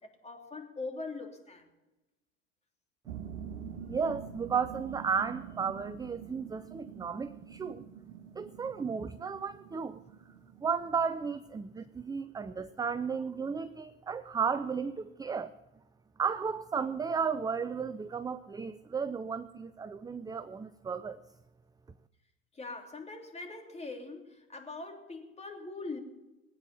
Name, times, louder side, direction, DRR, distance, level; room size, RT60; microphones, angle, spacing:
voice 1, 0.0-1.6 22.5-26.0, left 3 dB, 15° left, 3.2 m, -42 dB
sound 1, 3.1-12.0, right 8 dB, 85° right, 1.4 m, -46 dB
voice 2, 3.9-7.8 8.4-10.0 10.6-15.5 16.2-21.2, right 6 dB, 10° right, 0.4 m, -34 dB
19.5 x 9.3 x 7.0 m
hypercardioid pair, 80°, 37 cm